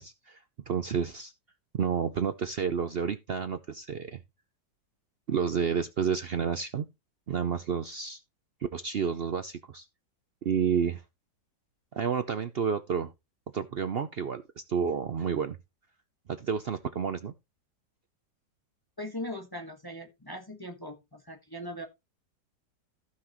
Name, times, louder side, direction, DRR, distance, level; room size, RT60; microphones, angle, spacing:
voice 1, 0.0-1.3 1.7-4.2 5.3-6.9 7.3-8.2 8.7-9.9 10.4-11.0 11.9-13.1 13.5-15.6 16.3-17.3, right 7 dB, 80° right, 0.5 m, -30 dB
voice 2, 19.0-21.8, left 1 dB, 15° left, 1.4 m, -40 dB
15.5 x 5.7 x 3.0 m
omnidirectional pair, 1.9 m